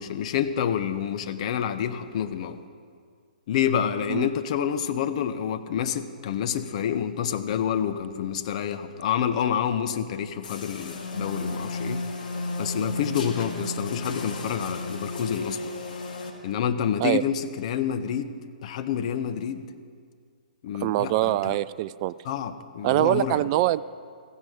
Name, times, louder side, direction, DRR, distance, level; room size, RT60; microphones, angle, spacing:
voice 1, 0.0-2.6 3.5-12.1 12.6-15.7 16.4-18.3 18.6-19.6 20.6-21.6 22.2-23.5, left 9 dB, 45° left, 10 dB, 0.8 m, -28 dB
sound 1, 10.4-16.3, left 2 dB, 65° left, 2.1 m, -33 dB
voice 2, 20.8-22.1 22.8-23.8, right 16 dB, 35° right, 17 dB, 0.3 m, -23 dB
15.5 x 15.0 x 5.0 m, 2.1 s
figure-of-eight pair, 130°, 5 cm